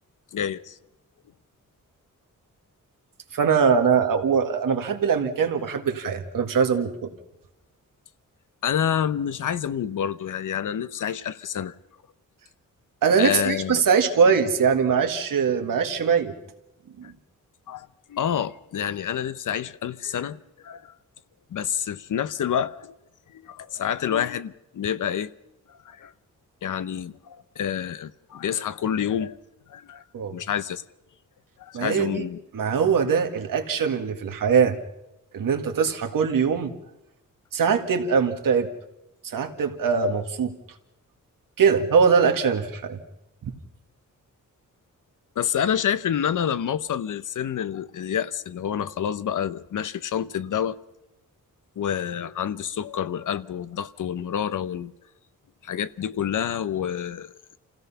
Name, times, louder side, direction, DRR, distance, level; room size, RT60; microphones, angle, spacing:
voice 1, 0.3-0.8 8.6-11.7 13.2-13.8 17.7-20.4 20.6-20.9 21.5-22.9 23.3-25.3 25.8-26.1 26.6-29.4 29.7-30.0 30.3-30.8 31.6-32.4 45.4-50.8 51.8-54.9 55.6-57.3, left 9 dB, 70° left, 0.8 m, -28 dB
voice 2, 3.3-7.1 13.0-16.3 17.0-17.1 30.1-30.3 31.7-32.3 32.5-34.8 35.3-36.7 37.5-38.7 39.2-40.5 41.6-43.0 43.4-43.5, right 6 dB, 85° right, 2.0 m, -22 dB
28.0 x 16.5 x 5.7 m
wide cardioid pair, 155°, 32 cm